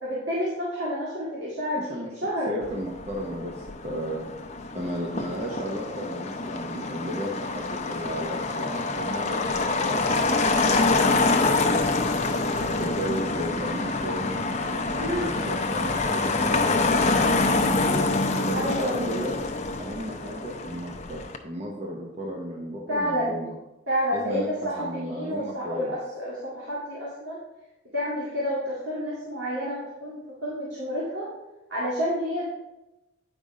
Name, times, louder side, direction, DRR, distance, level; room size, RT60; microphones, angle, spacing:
voice 1, 0.0-2.5 14.9-15.3 18.5-19.0 22.9-23.4 23.9-27.4 27.9-31.3 31.7-32.4, equal, 70° right, -7 dB, 2.0 m, -29 dB
voice 2, 1.7-2.1 2.5-4.3 4.7-11.8 12.6-18.1 18.5-19.4 19.8-23.5 24.1-24.5 24.8-26.0, equal, 35° right, -1 dB, 0.8 m, -34 dB
Motor vehicle (road), 2.6-21.4, left 3 dB, 35° left, 0.6 m, -26 dB
9.1 x 5.2 x 3.7 m, 0.99 s
head